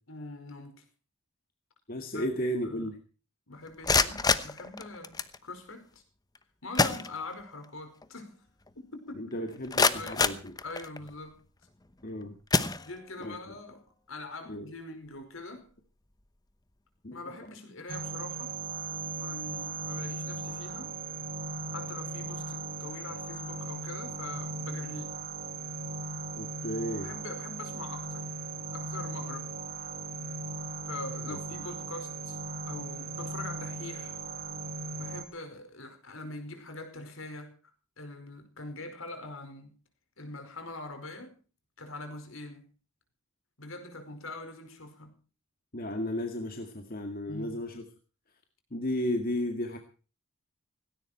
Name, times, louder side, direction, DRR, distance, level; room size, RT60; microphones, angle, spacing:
voice 1, 0.1-0.8 2.1-2.3 2.6-2.9 3.5-6.0 6.6-8.4 8.7-9.3 9.9-10.2 10.6-11.4 12.8-15.7 17.1-18.6 19.1-20.9 21.7-25.1 27.0-28.4 28.7-29.5 30.9-32.4 32.7-34.2 35.0-37.5 38.0-39.7 40.2-41.3 41.8-42.7 43.6-45.2 47.3-47.6, left 2 dB, 65° left, 7 dB, 5.1 m, -43 dB
voice 2, 1.9-3.0 9.1-10.6 12.0-12.4 13.2-13.6 14.5-14.7 17.0-17.3 26.4-27.1 31.3-31.4 45.7-47.8 48.7-49.8, left 1 dB, 40° left, 5 dB, 2.0 m, -34 dB
sound 1, 3.7-5.4 6.3-6.4 6.7-7.6 8.0-8.1 8.7-8.8 9.3-11.2 11.8-12.0 12.5-13.3, left 4 dB, 15° left, 0.9 m, -28 dB
sound 2, 17.9-35.2, right 3 dB, 40° right, 1.8 m, -38 dB
18.0 x 17.5 x 4.4 m, 0.38 s
head